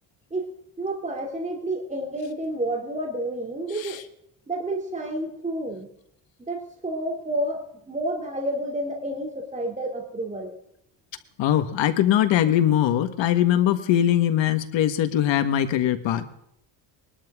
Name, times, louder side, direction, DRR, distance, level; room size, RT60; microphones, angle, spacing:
voice 1, 0.8-4.0 4.5-5.9 6.5-10.5, right 1 dB, 15° right, 1 dB, 2.6 m, -30 dB
voice 2, 11.4-16.3, left 11 dB, 75° left, 10 dB, 1.6 m, -21 dB
21.5 x 12.0 x 3.7 m, 0.75 s
cardioid pair, 110°, 45 cm